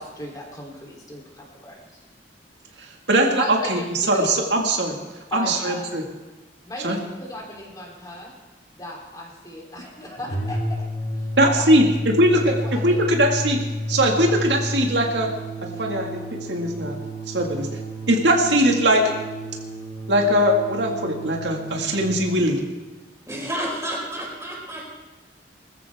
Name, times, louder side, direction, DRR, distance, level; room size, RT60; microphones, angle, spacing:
voice 1, 0.0-2.0 3.4-3.8 4.1-4.3 5.3-5.9 6.6-8.3 8.8-10.8 11.2-11.3 11.6-11.7 12.4-13.0 15.7-16.0, equal, 20° left, -1 dB, 3.5 m, -35 dB
voice 2, 3.1-3.4 3.7-3.8 4.1-5.0 5.3-6.0 6.8-7.0 11.4-12.5 12.8-13.6 13.9-15.3 15.8-16.2 16.5-17.0 17.3-17.7 18.1-19.0 20.1-22.6, right 1 dB, 85° right, 1 dB, 2.0 m, -20 dB
sound 1, 10.2-22.1, equal, 45° left, 3.2 m, -31 dB
voice 3, 23.3-24.9, right 1 dB, 15° right, -3 dB, 4.9 m, -30 dB
21.0 x 14.0 x 3.6 m, 1.2 s
head